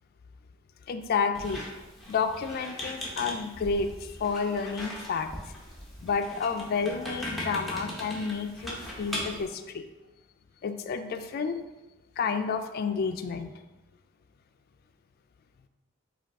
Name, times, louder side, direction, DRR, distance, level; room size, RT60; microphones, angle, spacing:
voice 1, 0.9-1.6 2.1-5.3 6.0-9.8 10.6-11.6 12.2-13.5, left 5 dB, 50° left, 9 dB, 0.3 m, -30 dB
Squeak, 1.3-9.5, equal, ahead, 0.7 m, -39 dB
5.2 x 2.3 x 3.4 m, 1.1 s
head